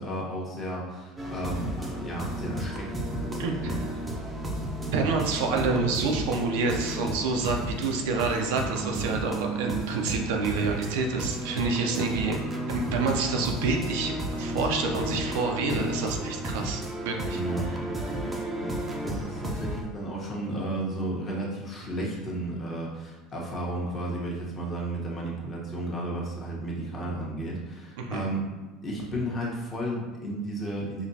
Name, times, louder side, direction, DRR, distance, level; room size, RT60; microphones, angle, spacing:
voice 1, 0.0-4.2 11.9-12.2 17.3-17.7 18.0-28.5 28.8-31.1, right 1 dB, 25° left, -3 dB, 1.1 m, -33 dB
sound 1, 1.2-19.8, right 1 dB, 20° right, 0.6 m, -33 dB
voice 2, 3.4-3.7 4.9-12.4 12.7-17.4 18.1-18.3 28.0-28.2, right 4 dB, 80° right, 2 dB, 0.5 m, -28 dB
5.0 x 2.3 x 2.7 m, 1.2 s
supercardioid pair, 120°, 0 cm